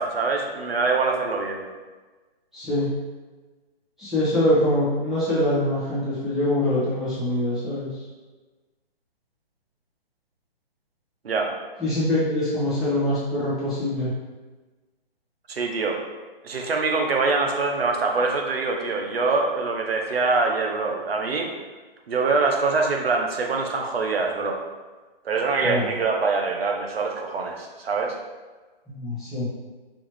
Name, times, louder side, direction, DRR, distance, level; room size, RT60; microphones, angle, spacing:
voice 1, 0.0-1.6 11.2-11.5 15.5-16.0 16.4-21.5 22.1-24.6 25.2-28.2, right 4 dB, 80° right, 2 dB, 0.9 m, -24 dB
voice 2, 2.5-2.9 4.0-7.9 11.8-14.1 25.6-25.9 28.9-29.5, left 1 dB, ahead, -13 dB, 1.1 m, -24 dB
4.6 x 3.0 x 3.1 m, 1.3 s
hypercardioid pair, 155°, 30 cm